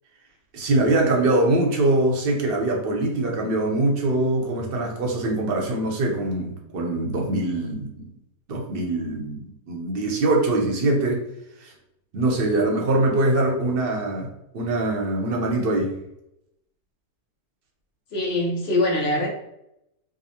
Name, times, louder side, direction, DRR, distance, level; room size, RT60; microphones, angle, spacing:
voice 1, 0.5-8.1 8.5-11.2 11.6-11.7 12.1-14.3 14.5-15.9, right 2 dB, 45° right, 0 dB, 0.8 m, -23 dB
voice 2, 18.1-19.3, left 1 dB, 55° left, 0 dB, 0.8 m, -23 dB
5.1 x 2.1 x 2.8 m, 0.84 s
omnidirectional pair, 1.7 m